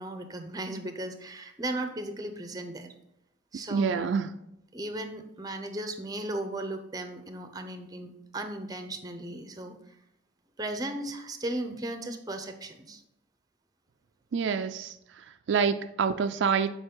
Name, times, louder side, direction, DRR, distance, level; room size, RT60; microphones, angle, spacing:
voice 1, 0.0-2.9 3.5-4.1 4.7-9.8 10.6-13.0, right 1 dB, 20° right, 7 dB, 0.6 m, -36 dB
voice 2, 3.7-4.3 14.3-16.7, right 6 dB, 70° right, 9 dB, 0.3 m, -27 dB
7.9 x 4.7 x 3.7 m, 0.82 s
head